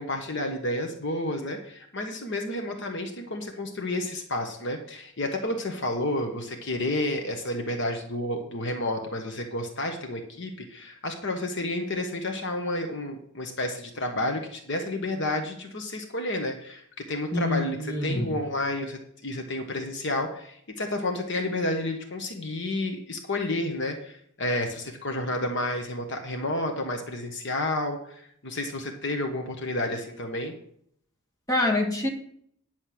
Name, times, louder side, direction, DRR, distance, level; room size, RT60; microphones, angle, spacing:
voice 1, 0.0-16.8 17.1-30.5, left 1 dB, 55° left, 4 dB, 1.2 m, -30 dB
voice 2, 17.3-18.3 31.5-32.1, left 1 dB, 15° left, -1 dB, 1.8 m, -26 dB
10.0 x 6.4 x 6.1 m, 0.66 s
head